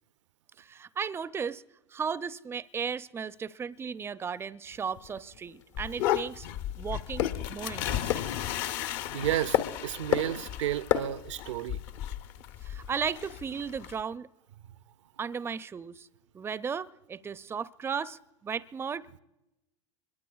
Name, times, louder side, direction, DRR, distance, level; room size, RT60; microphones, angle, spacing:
voice 1, 0.6-1.6 1.9-6.5 6.8-8.3 12.6-14.3 15.2-16.1 16.3-19.2, right 6 dB, 15° right, 0.4 m, -35 dB
sound 1, 4.6-13.5, left 11 dB, 75° left, 1.2 m, -36 dB
sound 2, 5.8-14.0, left 12 dB, 55° left, 0.7 m, -35 dB
voice 2, 9.1-11.8, right 13 dB, 75° right, 0.5 m, -32 dB
25.5 x 22.0 x 2.4 m
hypercardioid pair, 85°, 16 cm